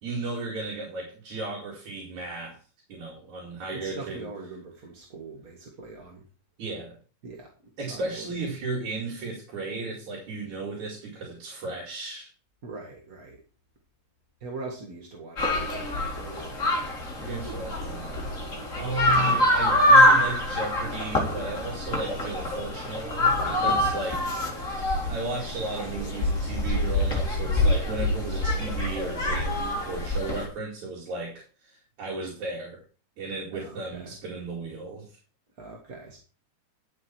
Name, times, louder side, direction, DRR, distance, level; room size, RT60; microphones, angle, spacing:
voice 1, 0.0-2.6 2.9-4.3 6.6-7.0 7.8-12.3 17.2-18.2 18.8-32.8 33.2-35.2, right 3 dB, 70° right, -2 dB, 3.7 m, -35 dB
voice 2, 3.7-6.3 7.2-8.3 12.6-13.4 14.4-16.8 23.6-23.9 24.3-24.5 33.5-34.1 35.6-36.2, right 3 dB, 35° right, 0 dB, 1.8 m, -42 dB
sound 1, 15.4-30.5, left 1 dB, 25° left, 2.5 m, -25 dB
11.5 x 7.4 x 4.5 m, 0.36 s
omnidirectional pair, 3.5 m